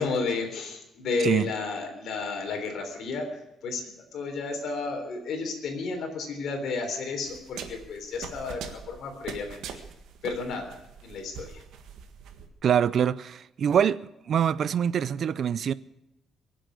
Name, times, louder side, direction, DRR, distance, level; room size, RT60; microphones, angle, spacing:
voice 1, 0.0-9.8 10.2-10.7 11.0-11.6, left 4 dB, 60° left, 3.6 m, -32 dB
voice 2, 1.2-1.5 12.6-14.0 14.3-15.7, right 8 dB, 45° right, 0.5 m, -24 dB
sound 1, 7.3-12.5, right 7 dB, 80° right, 1.7 m, -42 dB
23.0 x 7.7 x 8.3 m
cardioid pair, 160°, 0 cm